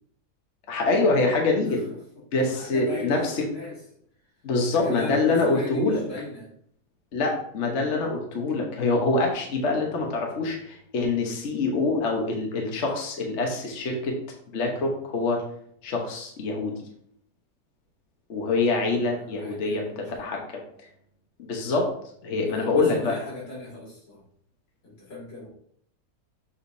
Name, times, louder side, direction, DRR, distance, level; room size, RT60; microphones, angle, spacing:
voice 1, 0.7-1.8 2.3-3.3 4.4-6.0 7.1-14.1 14.5-15.4 15.8-16.7 18.3-20.4 21.4-21.9 22.2-23.1, left 3 dB, 45° left, 1 dB, 1.2 m, -25 dB
voice 2, 2.3-3.8 4.7-6.5 19.1-20.3 22.4-24.2 24.8-25.5, left 2 dB, 85° left, -5 dB, 3.4 m, -37 dB
7.0 x 5.0 x 2.7 m, 0.66 s
omnidirectional pair, 1.9 m